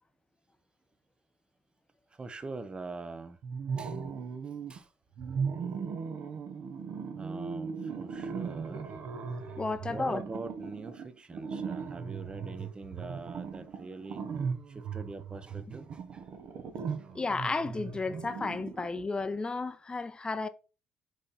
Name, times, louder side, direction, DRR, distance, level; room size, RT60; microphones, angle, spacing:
voice 1, 2.1-3.4 3.8-4.0 4.7-4.9 7.1-8.9 9.9-14.2 14.7-16.2 17.0-17.1 18.7-18.8, right 3 dB, 25° right, 0.9 m, -43 dB
sound 1, 3.4-4.8 5.2-19.1, right 5 dB, 60° right, 1.2 m, -38 dB
voice 2, 9.6-10.2 17.1-20.5, left 3 dB, 25° left, 0.8 m, -33 dB
6.3 x 4.1 x 4.3 m
cardioid pair, 85°, 4 cm